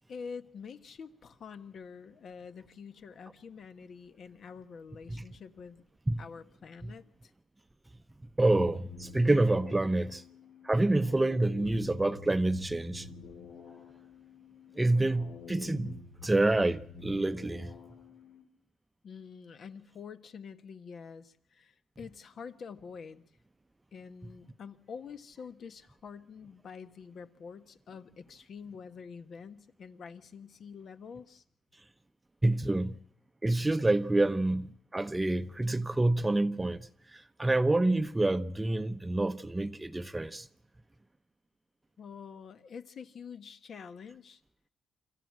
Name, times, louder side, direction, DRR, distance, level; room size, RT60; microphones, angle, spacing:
voice 1, 0.1-5.8 6.2-7.3 19.0-23.2 23.9-31.4 42.0-44.4, left 6 dB, 55° left, 1.3 m, -47 dB
sound 1, 8.4-18.4, left 5 dB, 85° left, 5.2 m, -49 dB
voice 2, 8.4-10.2 10.6-13.1 14.8-17.7 32.4-33.0 33.4-40.5, right 2 dB, 15° right, 0.8 m, -28 dB
26.0 x 14.0 x 7.6 m
cardioid pair, 90°, 0 cm